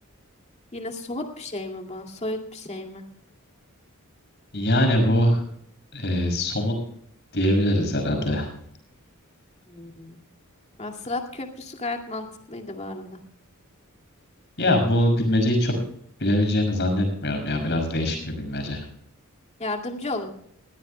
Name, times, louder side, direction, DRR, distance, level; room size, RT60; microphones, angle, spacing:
voice 1, 0.7-3.0 9.6-10.2 10.8-13.2 19.6-20.3, left 2 dB, 30° left, 3 dB, 2.3 m, -33 dB
voice 2, 4.5-5.4 5.9-6.7 7.3-8.5 14.6-15.8 16.2-18.8, left 1 dB, 55° left, 3 dB, 5.9 m, -22 dB
21.0 x 16.5 x 2.2 m, 0.67 s
head